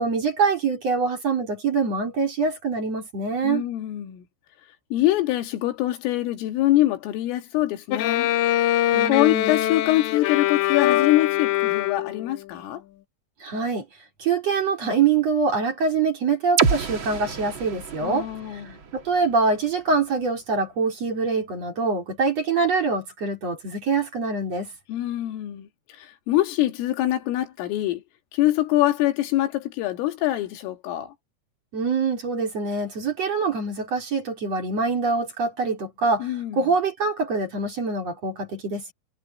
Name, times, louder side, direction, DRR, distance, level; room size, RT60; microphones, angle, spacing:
voice 1, 0.0-3.7 8.9-9.6 13.4-13.9 14.2-18.6 18.9-24.7 31.7-38.9, right 4 dB, 35° right, 4.3 m, -24 dB
voice 2, 3.4-4.2 4.9-8.3 9.0-12.8 18.0-18.8 24.9-28.0 28.3-31.1 36.2-36.6, left 15 dB, 90° left, 4.5 m, -24 dB
Bowed string instrument, 7.9-12.3, left 13 dB, 70° left, 3.3 m, -23 dB
sound 1, 16.6-20.4, right 5 dB, 85° right, 1.1 m, -29 dB
omnidirectional pair, 5.7 m